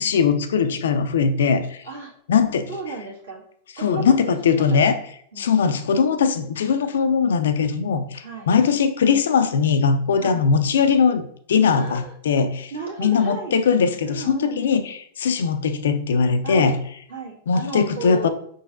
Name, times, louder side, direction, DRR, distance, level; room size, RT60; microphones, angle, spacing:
voice 1, 0.0-1.8 2.3-2.7 3.8-5.0 5.4-12.7 13.0-16.8 17.5-18.3, left 6 dB, 65° left, 10 dB, 0.4 m, -20 dB
voice 2, 2.7-3.4 3.8-4.1 4.5-4.9 5.3-5.5 6.6-7.1 8.2-8.5 10.2-10.5 11.7-12.1 12.7-13.6 14.0-14.7 16.4-16.8 17.1-18.3, right 4 dB, 70° right, -4 dB, 1.6 m, -34 dB
5.4 x 3.8 x 2.4 m, 0.64 s
figure-of-eight pair, 90°, 0 cm